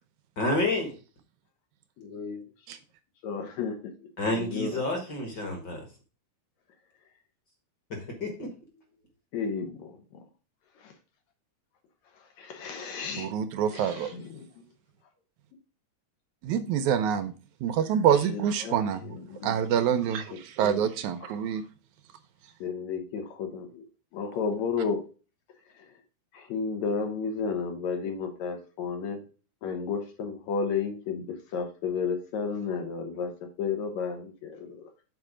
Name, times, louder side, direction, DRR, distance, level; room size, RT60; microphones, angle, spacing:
voice 1, 0.4-0.9 4.2-5.8 7.9-8.5, left 2 dB, 40° left, 2 dB, 1.8 m, -29 dB
voice 2, 2.0-2.4 3.2-3.8 4.3-4.8 9.3-10.0 10.8-10.9 12.4-13.3 13.7-14.5 18.3-18.8 19.0-19.8 20.6-20.9 21.3-21.4 22.6-23.9 24.1-25.0 26.3-29.2 29.6-31.3 31.5-33.3 33.6-34.9, left 5 dB, 70° left, 4 dB, 2.4 m, -32 dB
voice 3, 13.2-14.1 16.4-17.3 17.6-19.0 19.4-21.6, right 8 dB, 80° right, 10 dB, 2.1 m, -26 dB
6.8 x 4.3 x 4.9 m, 0.35 s
omnidirectional pair, 3.4 m